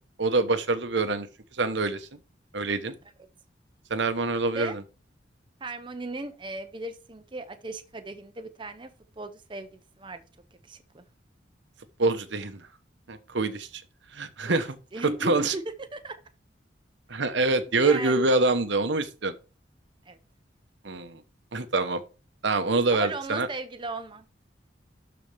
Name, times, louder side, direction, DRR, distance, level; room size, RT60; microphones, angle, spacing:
voice 1, 0.2-1.3 1.6-2.1 2.5-2.9 3.9-4.8 12.0-12.6 13.1-13.8 14.1-14.8 15.2-15.5 17.1-19.3 20.8-21.2 21.5-22.0 22.4-23.5, right 3 dB, 75° right, 1.0 m, -25 dB
voice 2, 5.6-10.2 10.6-11.0 14.5-14.6 14.9-16.2 17.7-18.4 20.1-20.2 22.9-24.3, right 2 dB, 25° right, 0.7 m, -37 dB
12.0 x 4.4 x 3.4 m
head